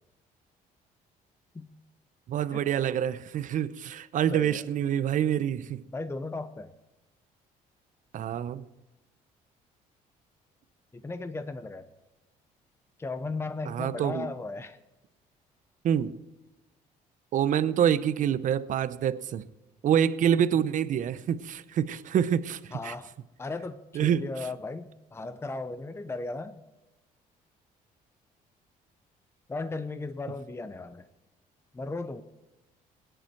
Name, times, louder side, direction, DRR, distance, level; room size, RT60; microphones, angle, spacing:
voice 1, 2.3-5.8 8.1-8.6 13.7-14.3 15.8-16.1 17.3-19.4 19.8-22.9 23.9-24.2, right 9 dB, 55° right, 0.7 m, -26 dB
voice 2, 4.3-4.6 5.9-6.7 10.9-11.9 13.0-14.8 22.7-23.1 23.4-26.6 29.5-31.1 31.7-32.2, left 3 dB, 15° left, 0.8 m, -36 dB
17.5 x 10.5 x 4.6 m
cardioid pair, 95°, 15 cm